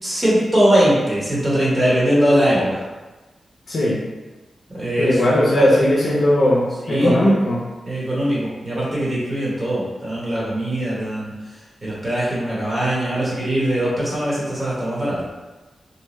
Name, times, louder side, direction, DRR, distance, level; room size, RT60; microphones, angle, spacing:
voice 1, 0.0-2.8 4.7-6.2 6.9-7.2 7.9-11.3 11.8-15.2, equal, 30° right, -7 dB, 1.0 m, -21 dB
voice 2, 3.7-4.0 5.0-7.6, left 1 dB, 65° left, -6 dB, 0.6 m, -18 dB
2.6 x 2.2 x 3.0 m, 1.2 s
cardioid pair, 80°, 0 cm